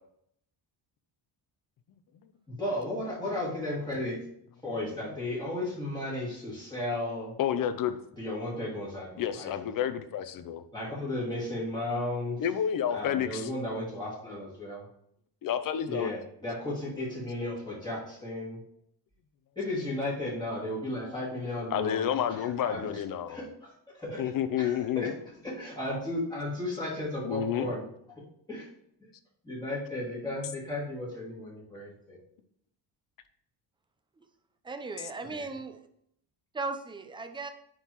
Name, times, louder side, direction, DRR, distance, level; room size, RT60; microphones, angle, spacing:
voice 1, 2.5-4.2 4.6-7.3 8.2-9.5 10.7-12.4 12.9-14.9 15.9-18.6 19.6-22.1 22.3-23.0 23.3-24.2 24.6-25.1 25.4-27.8 28.2-28.7 29.4-32.2 35.3-35.5, left 1 dB, 10° left, -8 dB, 2.4 m, -34 dB
voice 2, 7.4-8.0 9.2-10.6 12.4-13.5 15.4-16.1 21.7-23.4 24.2-25.1 27.2-27.7 35.0-35.1, left 9 dB, 50° left, 10 dB, 0.6 m, -30 dB
voice 3, 34.6-35.8 36.5-37.5, right 3 dB, 10° right, 8 dB, 0.4 m, -37 dB
9.7 x 3.8 x 3.0 m, 0.71 s
cardioid pair, 135°, 44 cm